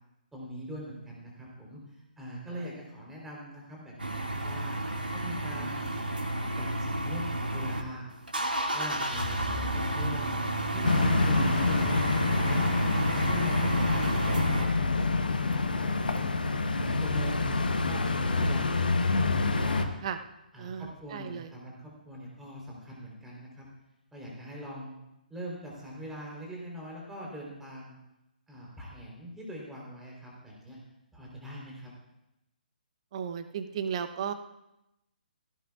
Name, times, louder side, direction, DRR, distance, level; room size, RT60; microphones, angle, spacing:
voice 1, 0.3-5.9 6.6-8.1 8.7-10.3 10.7-16.4 16.8-18.7 19.3-19.9 20.5-23.6 24.1-25.0 25.3-28.0 28.5-30.8 31.1-31.9, equal, 5° right, -3 dB, 3.7 m, -43 dB
sound 1, 4.0-7.8 8.1-14.7, right 1 dB, 80° right, 2.1 m, -31 dB
sound 2, 10.8-19.9, left 3 dB, 70° left, 1.2 m, -27 dB
voice 2, 13.3-13.8 20.0-20.2 20.6-21.5 33.1-34.3, right 8 dB, 40° right, 9 dB, 0.8 m, -35 dB
17.0 x 16.5 x 2.4 m, 0.90 s
figure-of-eight pair, 135°, 5 cm